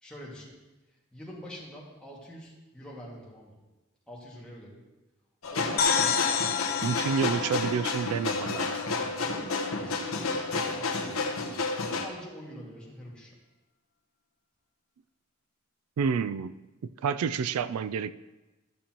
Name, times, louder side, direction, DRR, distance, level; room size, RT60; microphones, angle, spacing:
voice 1, 0.0-0.6 1.1-3.6 4.1-4.8 5.5-6.2 7.0-7.4 8.9-13.3, equal, 5° left, -5 dB, 2.0 m, -46 dB
sound 1, 5.4-12.1, left 3 dB, 70° left, 1.0 m, -31 dB
sound 2, 5.8-9.4, left 6 dB, 45° left, 0.6 m, -30 dB
voice 2, 6.8-8.7 16.0-16.6 16.8-18.1, right 6 dB, 85° right, 14 dB, 0.3 m, -29 dB
14.0 x 7.0 x 2.9 m, 1.1 s
head